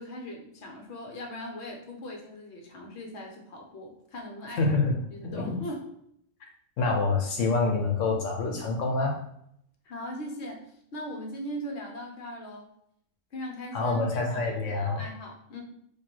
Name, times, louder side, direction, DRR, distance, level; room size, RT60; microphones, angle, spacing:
voice 1, 0.0-4.8 5.1-5.9 9.8-12.7 13.3-15.6, equal, 65° left, 1 dB, 1.2 m, -39 dB
voice 2, 4.6-4.9 5.2-5.5 6.8-9.2 13.7-15.0, left 3 dB, 85° left, 0 dB, 1.2 m, -26 dB
4.5 x 2.6 x 4.4 m, 0.72 s
omnidirectional pair, 1.3 m